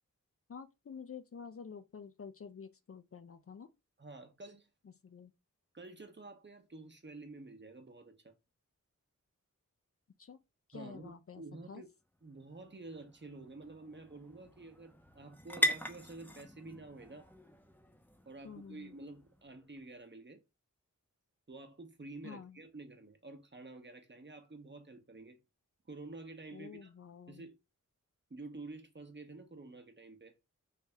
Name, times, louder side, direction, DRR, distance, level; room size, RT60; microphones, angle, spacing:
voice 1, 0.5-3.7 5.0-5.3 10.2-10.4 10.7-11.4 11.7-11.8 18.4-18.9 22.2-22.6 26.5-27.5, left 6 dB, 45° left, 0.4 m, -49 dB
voice 2, 4.0-4.7 5.7-8.3 10.7-11.9 12.2-17.3 18.3-20.4 21.5-25.4 25.9-26.9 27.3-27.5 28.3-30.4, right 3 dB, 35° right, 0.8 m, -50 dB
sound 1, 12.0-19.9, equal, 5° left, 0.6 m, -41 dB
3.3 x 2.7 x 3.4 m
wide cardioid pair, 60°, 32 cm